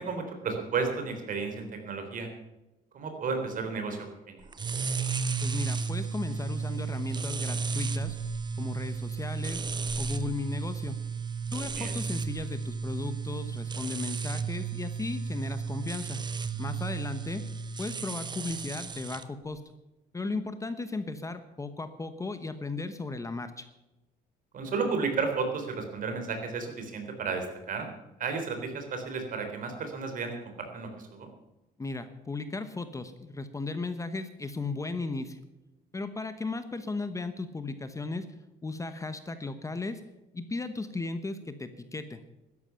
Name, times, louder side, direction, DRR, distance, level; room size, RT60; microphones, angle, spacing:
voice 1, 0.0-2.3 2.9-4.4 11.7-11.9 24.5-27.9 28.2-31.3, right 4 dB, 55° right, 5 dB, 3.6 m, -33 dB
sound 1, 4.5-19.2, right 5 dB, 25° right, 0.9 m, -33 dB
voice 2, 5.4-8.2 8.6-9.6 10.0-10.9 11.5-16.2 16.6-17.4 17.8-19.6 20.1-23.7 31.8-35.4 35.9-38.2 38.6-40.0 40.3-42.2, left 3 dB, 20° left, 10 dB, 1.0 m, -36 dB
12.5 x 11.0 x 6.9 m, 1.0 s
cardioid pair, 110°, 17 cm